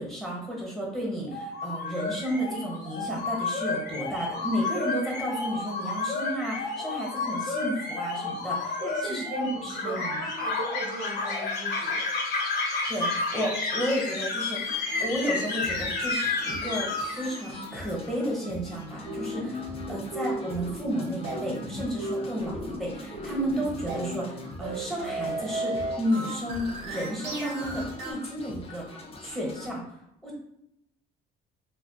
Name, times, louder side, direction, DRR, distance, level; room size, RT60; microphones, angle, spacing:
voice 1, 0.0-10.2 12.9-29.8 30.2-30.4, equal, ahead, -3 dB, 1.1 m, -32 dB
sound 1, 1.3-17.8, left 3 dB, 70° left, 0.7 m, -31 dB
voice 2, 8.8-12.1 19.9-20.0, right 2 dB, 50° right, -1 dB, 0.7 m, -38 dB
sound 2, 14.7-29.7, left 1 dB, 35° left, 0.6 m, -43 dB
sound 3, 19.0-28.1, right 1 dB, 85° right, 0.9 m, -34 dB
2.4 x 2.2 x 3.5 m, 0.79 s
cardioid pair, 110°, 17 cm